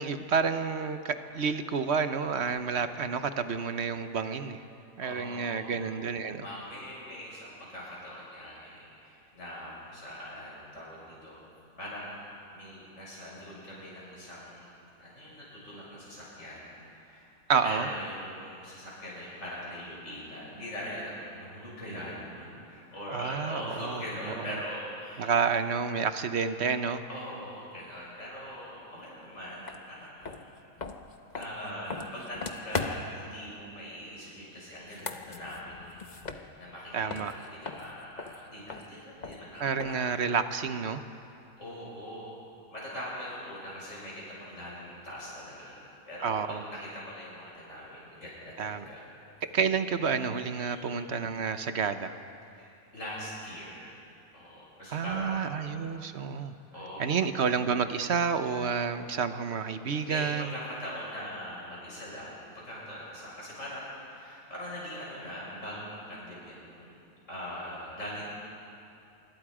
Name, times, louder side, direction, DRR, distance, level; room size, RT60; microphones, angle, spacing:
voice 1, 0.0-4.6 5.0-6.5 17.5-17.9 23.1-24.0 24.4-24.5 25.2-27.0 36.9-37.3 39.6-41.0 46.2-46.6 48.6-48.8 49.5-52.1 54.9-56.5 57.0-60.5, right 6 dB, 50° right, 10 dB, 1.0 m, -29 dB
voice 2, 5.0-5.9 6.4-11.4 11.8-17.3 17.6-25.3 27.1-30.5 31.4-36.0 36.3-40.2 41.6-42.4 42.7-45.8 46.1-49.1 50.6-50.8 52.5-54.0 54.3-55.6 56.7-57.1 59.9-67.0 67.3-68.3, equal, 50° left, -6 dB, 7.2 m, -42 dB
sound 1, 29.7-29.8 30.2-33.2 34.7-36.8 37.1-40.1, left 4 dB, 35° left, 0.9 m, -39 dB
26.0 x 23.5 x 5.0 m, 2.8 s
omnidirectional pair, 1.6 m